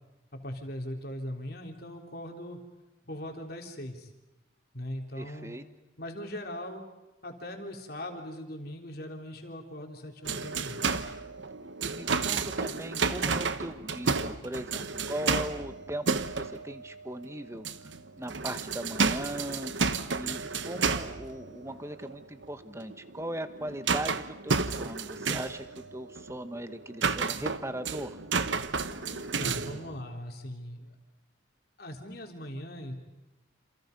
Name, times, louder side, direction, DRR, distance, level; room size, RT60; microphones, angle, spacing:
voice 1, 0.3-2.6 3.1-4.1 4.7-5.6 6.0-6.8 7.2-10.8 29.1-30.9 31.8-32.9, left 1 dB, 50° left, 3 dB, 3.7 m, -40 dB
voice 2, 5.2-5.6 11.8-17.7 18.1-19.7 20.1-28.2, right 1 dB, 15° right, 10 dB, 1.2 m, -39 dB
sound 1, 10.2-17.3 17.5-30.0, right 4 dB, 70° right, 1.1 m, -32 dB
28.5 x 28.5 x 5.4 m, 1.0 s
head